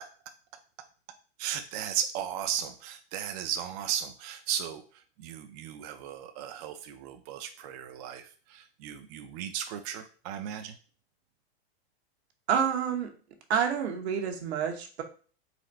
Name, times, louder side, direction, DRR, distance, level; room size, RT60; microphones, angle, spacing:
voice 1, 1.4-10.8, right 9 dB, 40° right, 6 dB, 0.4 m, -36 dB
voice 2, 12.5-13.1 13.5-15.0, right 7 dB, 80° right, 4 dB, 1.1 m, -28 dB
4.1 x 2.5 x 4.1 m, 0.39 s
supercardioid pair, 145°, 33 cm